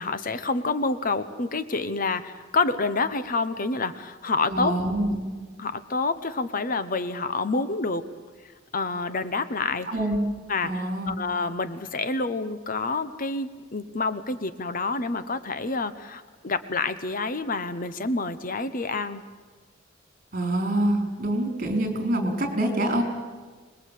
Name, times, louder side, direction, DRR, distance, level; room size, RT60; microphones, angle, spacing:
voice 1, 0.0-4.7 5.6-8.0 8.7-9.9 10.5-19.2, left 3 dB, 45° left, 12 dB, 1.0 m, -28 dB
voice 2, 4.5-5.2 9.9-10.2 10.6-11.1 20.3-23.0, right 1 dB, 45° right, 4 dB, 4.5 m, -25 dB
25.5 x 20.5 x 8.5 m, 1.4 s
head